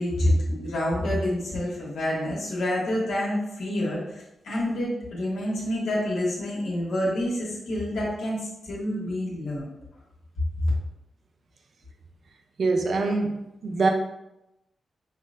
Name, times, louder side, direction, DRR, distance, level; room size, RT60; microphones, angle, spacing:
voice 1, 0.0-9.6, left 1 dB, 85° left, -6 dB, 1.2 m, -27 dB
voice 2, 12.6-13.9, right 3 dB, 65° right, 3 dB, 0.5 m, -24 dB
5.4 x 2.1 x 2.5 m, 0.89 s
cardioid pair, 55°, 0 cm